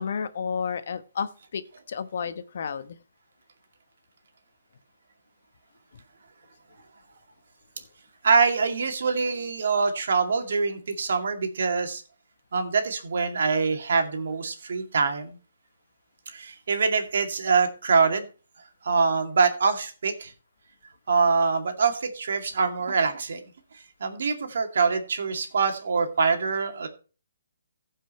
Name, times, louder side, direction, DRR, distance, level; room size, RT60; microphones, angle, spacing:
voice 1, 0.0-1.6 1.9-3.0, left 6 dB, 60° left, 11 dB, 1.1 m, -31 dB
voice 2, 8.2-12.0 12.5-15.4 16.3-18.3 18.8-20.3 21.1-23.4 24.0-26.9, right 5 dB, 65° right, 5 dB, 2.2 m, -24 dB
15.5 x 5.6 x 4.3 m, 0.35 s
hypercardioid pair, 155°, 0 cm